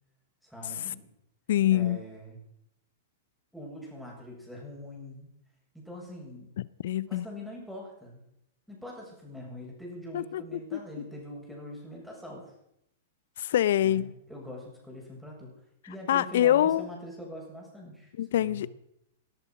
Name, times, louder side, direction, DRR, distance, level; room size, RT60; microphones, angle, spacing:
voice 1, 0.4-1.1 1.7-2.4 3.5-5.3 5.7-6.5 7.1-8.2 8.7-12.5 13.8-15.5 15.9-18.7, equal, ahead, 7.4 m, -43 dB
voice 2, 1.5-2.0 6.8-7.2 10.1-10.4 10.7-10.8 13.4-14.1 16.1-16.9 18.2-18.7, left 12 dB, 65° left, 0.6 m, -24 dB
18.5 x 10.5 x 5.9 m
hypercardioid pair, 110°, 0 cm